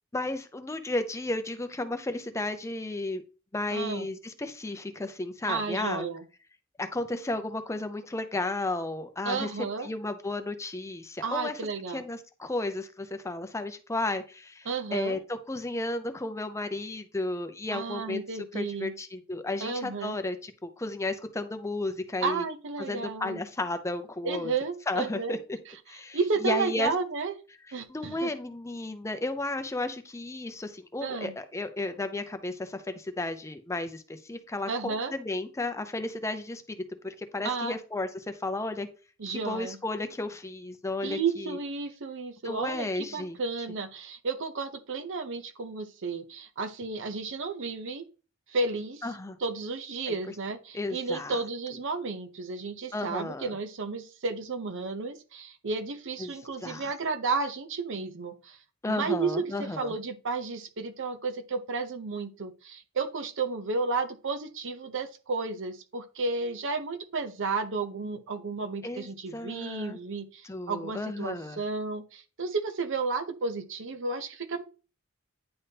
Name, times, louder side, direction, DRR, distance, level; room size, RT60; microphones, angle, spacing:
voice 1, 0.1-3.2 3.5-6.1 6.8-9.5 9.8-11.6 11.9-18.2 18.5-22.4 22.8-24.5 24.9-25.4 25.9-26.9 27.9-36.8 37.0-38.9 39.3-41.6 42.4-43.4 49.0-49.4 50.1-50.2 50.7-51.4 52.9-53.5 56.2-56.3 56.6-56.9 58.8-59.9 68.8-70.0 70.4-71.6, left 2 dB, 15° left, 9 dB, 0.5 m, -33 dB
voice 2, 3.7-4.1 5.5-6.2 9.2-9.9 11.2-12.0 14.7-15.2 17.7-18.9 19.6-20.2 22.2-23.4 24.2-25.4 26.1-27.3 27.7-28.3 31.0-31.3 34.7-35.1 37.4-37.8 39.2-39.8 41.0-48.0 48.5-49.0 49.4-58.6 58.9-59.3 59.6-74.6, right 4 dB, 65° right, 7 dB, 0.7 m, -32 dB
9.7 x 3.5 x 2.8 m, 0.34 s
head